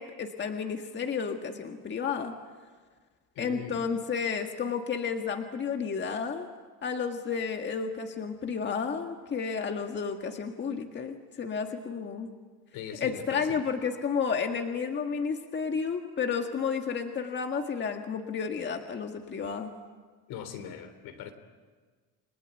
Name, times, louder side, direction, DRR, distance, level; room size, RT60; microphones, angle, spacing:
voice 1, 0.0-2.3 3.4-6.5 6.8-12.3 13.0-19.7, left 6 dB, 30° left, 4 dB, 1.8 m, -32 dB
voice 2, 3.4-3.9 12.7-13.6 20.3-21.3, left 7 dB, 70° left, 8 dB, 3.6 m, -41 dB
29.5 x 21.0 x 9.1 m, 1.5 s
cardioid pair, 145°, 37 cm